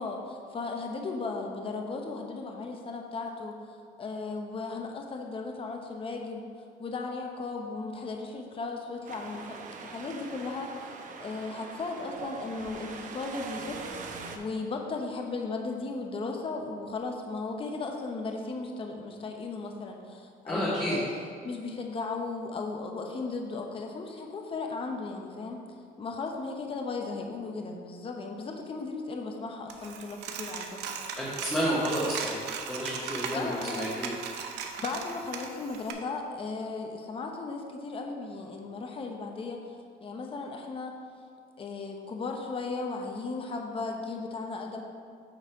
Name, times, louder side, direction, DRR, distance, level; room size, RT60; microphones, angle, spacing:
voice 1, 0.0-6.5 6.8-9.6 9.8-13.8 14.0-21.1 21.4-25.6 26.0-31.0 33.3-33.9 34.8-39.8 40.0-40.9 41.6-44.8, left 3 dB, 35° left, 2 dB, 0.9 m, -36 dB
Wind, 9.1-14.4, right 5 dB, 50° right, 0.8 m, -42 dB
voice 2, 20.5-21.0 31.2-32.4 32.7-34.1, equal, 10° left, -9 dB, 1.8 m, -30 dB
Coin (dropping), 29.7-35.9, right 6 dB, 90° right, 0.7 m, -38 dB
8.8 x 4.2 x 4.7 m, 2.2 s
cardioid pair, 110°, 17 cm